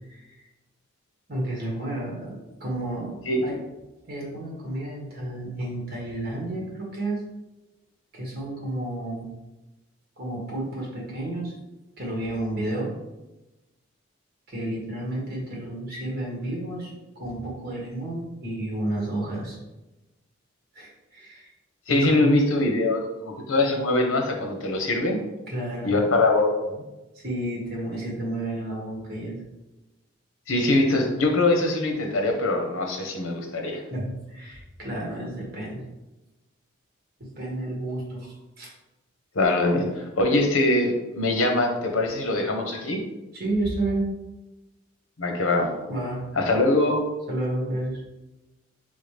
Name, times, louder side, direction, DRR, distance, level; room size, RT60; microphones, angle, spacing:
voice 1, 0.1-0.4 1.3-3.2 3.4-3.5 4.1-7.2 8.1-9.3 10.2-11.5 12.0-12.9 14.5-19.6 20.7-21.5 21.9-22.3 25.5-26.0 27.1-29.4 33.7-35.8 37.2-38.7 43.3-44.1 45.9-46.2 47.3-48.0, right 1 dB, 50° right, -3 dB, 1.6 m, -31 dB
voice 2, 21.9-25.2 25.8-26.8 30.5-33.8 39.3-43.0 45.2-45.7 46.4-47.0, left 2 dB, 85° left, 3 dB, 0.9 m, -23 dB
4.2 x 3.7 x 3.3 m, 1.0 s
head